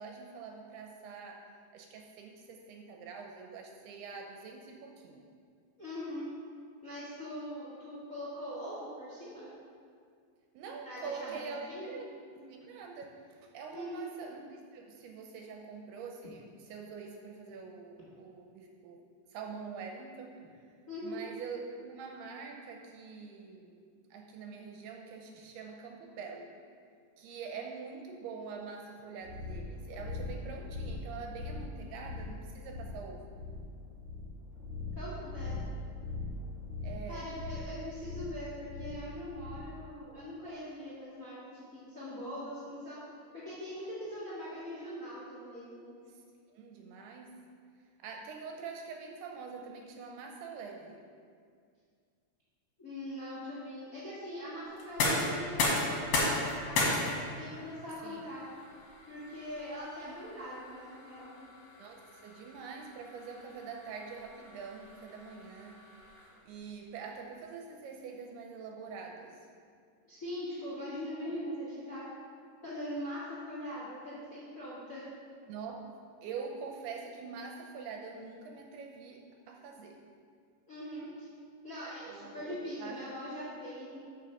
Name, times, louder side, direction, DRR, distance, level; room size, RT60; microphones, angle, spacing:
voice 1, 0.0-1.4 1.7-5.3 10.5-19.0 19.3-20.3 21.0-23.8 24.1-26.5 27.2-33.2 36.8-37.2 46.1-46.2 46.5-47.4 48.0-51.0 58.0-58.3 61.8-65.8 66.4-69.4 75.5-75.8 76.2-80.0 82.0-83.0, right 5 dB, 80° right, 2 dB, 2.6 m, -45 dB
voice 2, 5.8-6.3 6.8-9.5 10.8-12.0 13.7-14.1 20.9-21.2 34.9-35.7 37.0-43.0 43.3-46.0 52.8-56.8 57.4-58.5 59.1-61.4 70.1-72.1 72.6-75.1 80.7-81.3 81.6-84.0, equal, 35° left, -9 dB, 1.4 m, -42 dB
sound 1, 29.2-39.8, left 3 dB, 40° right, 2.9 m, -41 dB
sound 2, 54.7-66.5, left 2 dB, 70° left, 3.5 m, -36 dB
7.8 x 5.7 x 6.6 m, 2.2 s
omnidirectional pair, 4.9 m